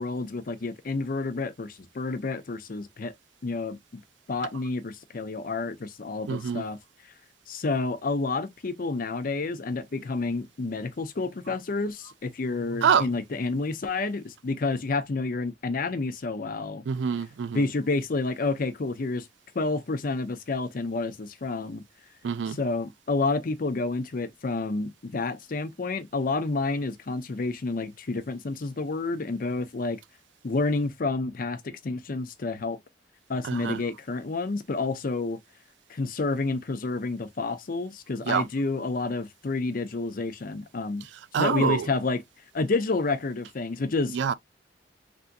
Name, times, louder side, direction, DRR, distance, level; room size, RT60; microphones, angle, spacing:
voice 1, 0.0-3.1 3.4-4.0 4.3-6.8 7.5-16.8 17.5-19.3 19.5-21.8 22.6-30.0 30.4-32.8 33.3-35.4 35.9-41.1 41.4-42.2 42.5-44.2, left 3 dB, 50° left, 0.6 m, -29 dB
voice 2, 6.3-6.6 12.8-13.1 16.9-17.6 22.2-22.6 33.4-33.8 38.3-38.4 41.3-41.9 44.1-44.3, right 7 dB, 90° right, 0.4 m, -25 dB
3.4 x 2.6 x 2.5 m
head